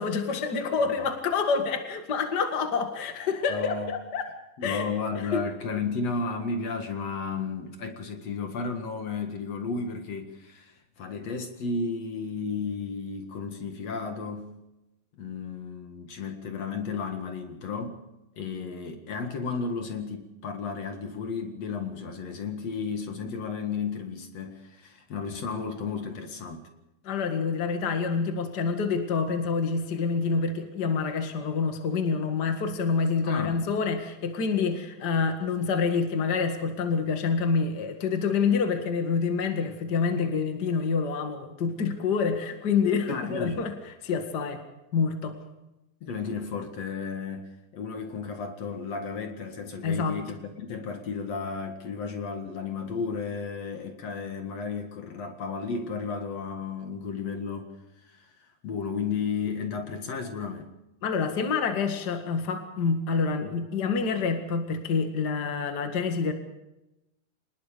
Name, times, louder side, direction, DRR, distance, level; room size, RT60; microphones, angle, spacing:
voice 1, 0.0-4.3 4.6-4.9 5.3-5.4 27.0-43.7 44.0-44.6 44.9-45.3 49.8-50.2 61.0-66.3, left 5 dB, 70° left, 0.9 m, -27 dB
voice 2, 3.5-3.9 4.6-14.5 15.2-18.0 18.4-26.7 33.2-33.7 43.1-43.6 46.0-57.7 58.0-60.7, left 4 dB, 50° left, 2.1 m, -33 dB
26.0 x 20.5 x 5.1 m
omnidirectional pair, 5.2 m